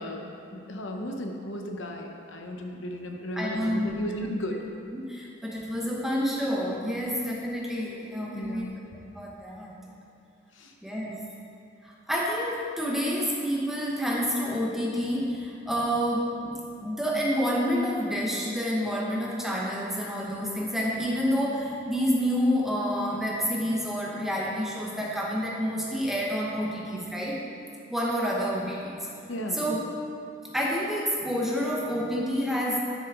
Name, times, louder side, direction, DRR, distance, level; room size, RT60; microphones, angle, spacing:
voice 1, 0.0-4.6 8.3-8.7 10.6-10.7 29.3-29.6, left 1 dB, 70° left, 2 dB, 0.8 m, -35 dB
voice 2, 3.3-4.0 4.9-8.8 9.1-9.7 10.8-11.2 11.8-27.4 27.9-29.1 29.5-29.8 30.4-32.8, equal, ahead, -4 dB, 0.9 m, -28 dB
10.5 x 6.1 x 3.6 m, 2.6 s
head